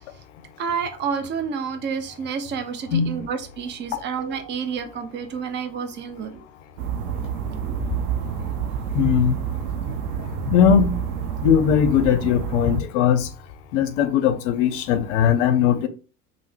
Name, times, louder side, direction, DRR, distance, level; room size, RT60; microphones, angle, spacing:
voice 1, 0.6-6.4 7.6-7.8, right 6 dB, 25° right, 0.5 m, -29 dB
sound 1, 6.8-12.8, right 8 dB, 80° right, 0.6 m, -28 dB
voice 2, 8.9-9.3 10.5-11.0 11.4-13.3 13.7-15.9, left 8 dB, 60° left, 0.6 m, -19 dB
3.3 x 2.0 x 3.2 m
hypercardioid pair, 90°, 43 cm